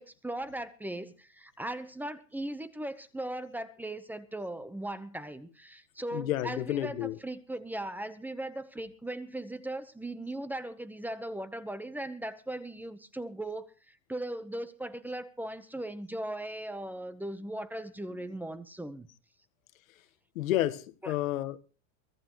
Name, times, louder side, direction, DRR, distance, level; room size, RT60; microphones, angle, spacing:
voice 1, 0.0-19.1 21.0-21.1, right 1 dB, 5° right, 1.0 m, -38 dB
voice 2, 6.1-7.2 20.3-21.6, left 14 dB, 80° left, 1.5 m, -30 dB
23.0 x 15.0 x 3.1 m
supercardioid pair, 140°, 40 cm